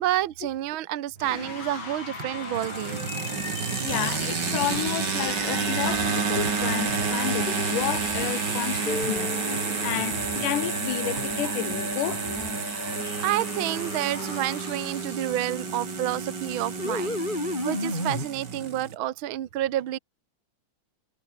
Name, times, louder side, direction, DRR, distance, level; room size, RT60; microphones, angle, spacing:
voice 1, 0.0-3.0 3.4-3.6 11.4-11.5 12.7-20.0, right 13 dB, 75° right, 1.2 m, -30 dB
sound 1, 1.2-15.3, left 4 dB, 60° left, 7.3 m, -38 dB
sound 2, 2.2-19.0, right 6 dB, 35° right, 2.5 m, -30 dB
voice 2, 3.8-12.2, left 13 dB, 75° left, 2.9 m, -31 dB
sound 3, 3.9-12.5 13.0-18.3, left 2 dB, 15° left, 3.8 m, -36 dB
omnidirectional pair, 3.9 m